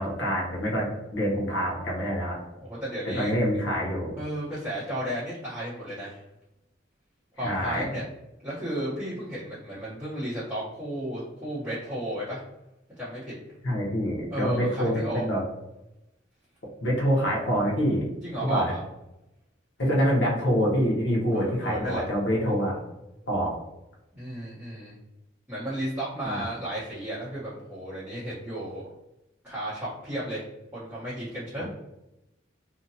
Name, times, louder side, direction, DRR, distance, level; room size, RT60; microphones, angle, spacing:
voice 1, 0.0-2.4 3.1-4.1 7.4-7.9 13.6-15.4 16.8-18.1 18.4-18.7 19.8-22.8 23.3-23.5 26.2-26.4 31.6-31.7, equal, 75° left, -3 dB, 0.8 m, -26 dB
voice 2, 2.6-3.3 4.2-6.2 7.4-8.0 8.4-12.4 13.0-13.3 14.3-15.2 18.2-18.8 21.3-22.0 24.1-24.9 25.5-28.8 29.4-30.4 30.7-31.6, right 1 dB, 10° right, -14 dB, 0.8 m, -33 dB
2.7 x 2.1 x 2.7 m, 0.93 s
head